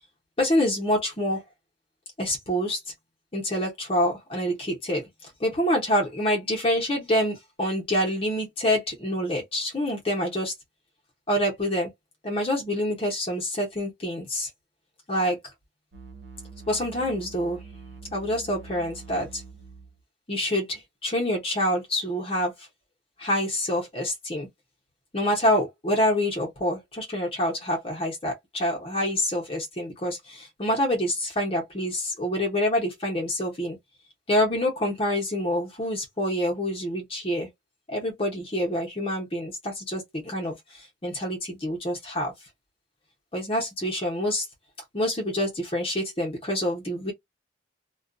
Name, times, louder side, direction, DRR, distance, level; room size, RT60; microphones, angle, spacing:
voice 1, 0.4-1.4 2.2-2.9 3.3-10.5 11.3-11.9 12.2-14.5 15.1-15.4 16.7-17.6 18.1-19.4 20.3-22.7 23.2-24.5 25.1-33.8 34.3-37.5 37.9-42.3 43.3-44.5 44.9-47.1, equal, 30° left, 0.9 m, -27 dB
sound 1, 15.9-20.0, right 5 dB, 65° right, 0.6 m, -45 dB
2.4 x 2.3 x 2.5 m
head